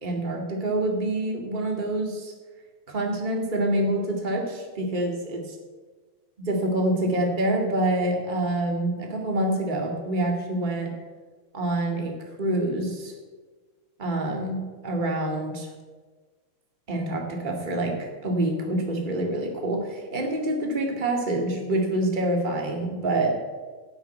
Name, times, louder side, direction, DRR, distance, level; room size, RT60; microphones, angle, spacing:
voice 1, 0.0-2.3 2.9-5.6 6.4-10.9 11.5-12.1 12.4-13.1 14.0-15.7 16.9-23.4, right 1 dB, 25° right, 1 dB, 1.0 m, -26 dB
16.5 x 5.8 x 9.0 m, 1.4 s
omnidirectional pair, 4.4 m